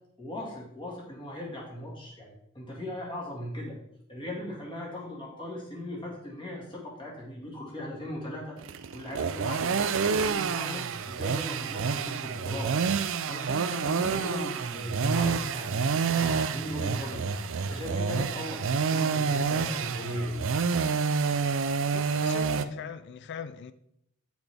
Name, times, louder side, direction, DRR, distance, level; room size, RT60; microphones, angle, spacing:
voice 1, 0.2-3.7 4.1-8.6 8.9-12.7 13.2-17.2 17.6-20.4, left 1 dB, 25° left, 2.0 m, -38 dB
sound 1, 8.6-22.6, right 5 dB, 60° right, 0.5 m, -28 dB
voice 2, 21.9-23.7, left 7 dB, 55° left, 0.4 m, -40 dB
8.8 x 6.0 x 3.5 m
head